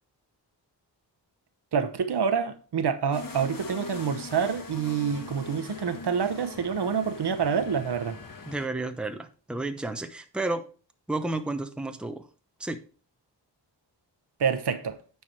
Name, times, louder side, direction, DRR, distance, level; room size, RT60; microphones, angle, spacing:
voice 1, 1.7-8.2 14.4-15.0, right 6 dB, 65° right, 1.0 m, -27 dB
sound 1, 3.1-8.7, left 3 dB, 50° left, 1.3 m, -42 dB
voice 2, 8.5-10.6 11.1-12.3 12.6-12.8, right 2 dB, ahead, 0.8 m, -31 dB
9.4 x 4.7 x 4.6 m
wide cardioid pair, 85°, 42 cm